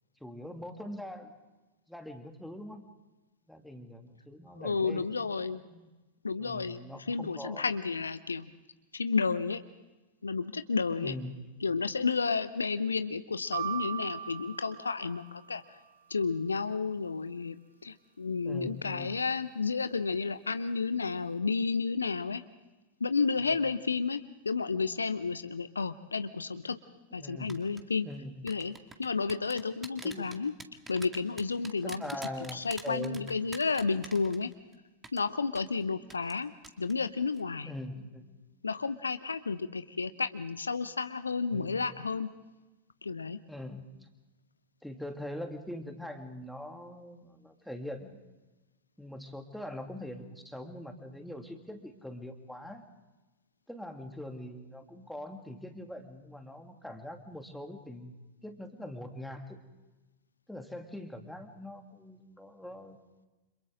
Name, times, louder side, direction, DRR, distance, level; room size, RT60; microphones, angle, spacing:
voice 1, 0.2-1.3 1.9-2.8 3.5-5.3 5.7-5.9 6.4-7.7 10.9-11.5 18.4-19.2 27.2-27.5 28.0-28.5 30.0-30.3 31.6-33.2 37.6-38.4 41.5-41.9 43.5-43.9 44.8-48.2 49.0-52.8 53.7-58.1 58.4-59.6 60.5-63.0, left 1 dB, ahead, 4 dB, 2.5 m, -42 dB
voice 2, 4.6-5.6 6.2-6.8 7.1-8.5 8.9-9.6 10.2-11.1 11.6-15.6 16.1-22.4 23.0-26.8 27.1-28.1 28.4-28.7 29.0-30.5 30.9-32.1 32.5-34.5 35.1-36.5 36.8-37.7 38.6-42.3 43.0-43.4, left 4 dB, 75° left, 13 dB, 0.7 m, -31 dB
sound 1, 13.5-15.7, right 10 dB, 60° right, 0.6 m, -38 dB
sound 2, 27.5-27.8 28.5-34.7 35.0-35.2 35.6-35.7 36.1-36.4 36.6-36.9 37.2-37.4, right 3 dB, 15° right, 2.0 m, -45 dB
29.5 x 27.0 x 3.9 m, 1.1 s
figure-of-eight pair, 90°, 0 cm